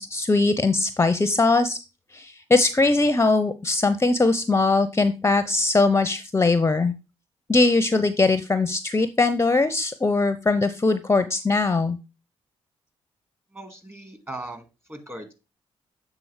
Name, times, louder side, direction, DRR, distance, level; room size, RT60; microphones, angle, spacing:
voice 1, 0.0-1.8 2.1-6.9 7.5-12.0, left 3 dB, 20° left, 12 dB, 0.6 m, -21 dB
voice 2, 13.5-15.3, right 1 dB, 20° right, 7 dB, 2.1 m, -39 dB
7.7 x 3.8 x 4.8 m, 0.28 s
supercardioid pair, 50°, 12 cm